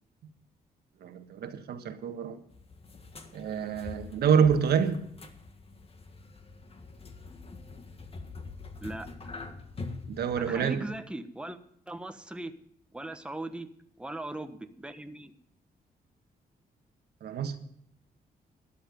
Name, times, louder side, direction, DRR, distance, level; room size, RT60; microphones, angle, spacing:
voice 1, 1.0-2.4 3.3-5.0 10.1-10.8 17.2-17.6, right 7 dB, 90° right, 1.5 m, -27 dB
sound 1, 2.5-11.0, left 3 dB, 40° left, 1.7 m, -45 dB
voice 2, 10.3-11.6 11.9-12.5 12.9-13.7 14.0-15.3, right 2 dB, 5° right, 1.1 m, -39 dB
13.0 x 11.5 x 5.2 m
cardioid pair, 100°, 16 cm